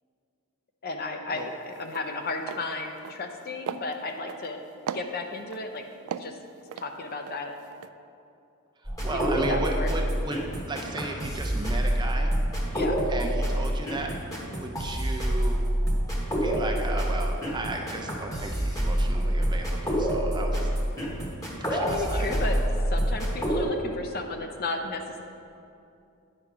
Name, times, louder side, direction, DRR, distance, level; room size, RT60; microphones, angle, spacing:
voice 1, 0.8-4.6 4.9-5.8 6.2-6.3 6.8-7.5 9.1-9.9 12.7-13.0 21.7-22.6 22.9-25.2, left 3 dB, 45° left, 4 dB, 0.6 m, -33 dB
sound 1, 1.4-1.5 1.8-2.1 2.4-2.6 3.0-3.4 3.7-4.5 4.9-5.6 6.1-7.4 7.7-7.9, right 7 dB, 75° right, 0.3 m, -36 dB
sound 2, 8.9-23.6, equal, 15° left, 1.1 m, -27 dB
voice 2, 9.0-12.3 13.1-14.1 14.5-15.6 16.4-20.7 21.6-22.6, right 2 dB, 20° right, 2 dB, 0.6 m, -35 dB
9.5 x 5.7 x 4.9 m, 2.6 s
head